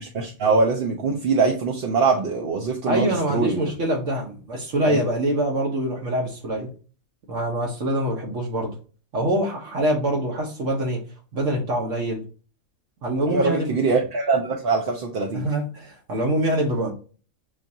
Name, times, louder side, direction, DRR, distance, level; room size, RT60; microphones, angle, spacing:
voice 1, 0.0-3.6 4.9-5.0 13.3-15.4, right 4 dB, 55° right, 1 dB, 0.7 m, -23 dB
voice 2, 2.8-6.7 7.3-8.7 9.1-11.0 11.3-12.2 13.0-13.8 15.3-16.9, right 1 dB, 75° right, -1 dB, 1.3 m, -24 dB
6.3 x 2.5 x 2.7 m, 0.38 s
omnidirectional pair, 1.4 m